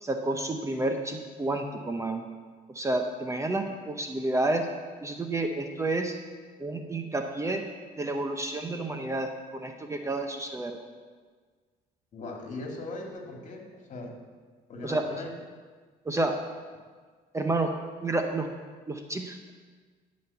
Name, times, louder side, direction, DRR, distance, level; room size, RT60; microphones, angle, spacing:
voice 1, 0.0-2.2 2.7-4.7 5.0-6.1 6.6-7.6 8.0-10.8 14.8-15.0 16.0-16.4 17.3-17.7 18.0-18.5 18.9-19.5, right 2 dB, 15° right, 4 dB, 0.8 m, -30 dB
voice 2, 12.1-14.1 14.7-15.3, left 2 dB, 45° left, 1 dB, 2.3 m, -39 dB
13.5 x 5.3 x 6.9 m, 1.5 s
cardioid pair, 110°, 17 cm